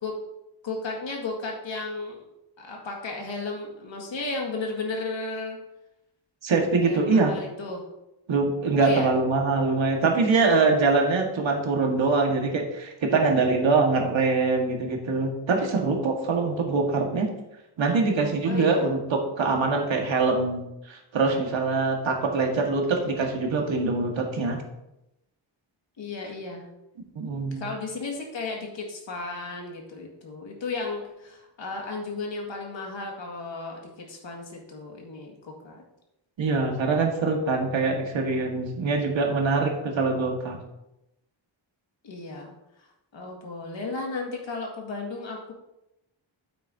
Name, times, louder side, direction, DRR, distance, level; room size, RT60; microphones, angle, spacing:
voice 1, 0.6-2.2 2.6-5.6 6.8-7.8 8.8-9.1 18.5-18.9 26.0-26.6 27.4-35.8 42.0-42.9 43.1-45.5, left 3 dB, 70° left, 0 dB, 2.0 m, -34 dB
voice 2, 6.4-7.3 8.3-17.3 17.8-24.6 27.1-27.6 36.4-40.6, right 3 dB, 75° right, 1 dB, 1.7 m, -24 dB
9.4 x 8.2 x 2.7 m, 0.90 s
wide cardioid pair, 135°, 46 cm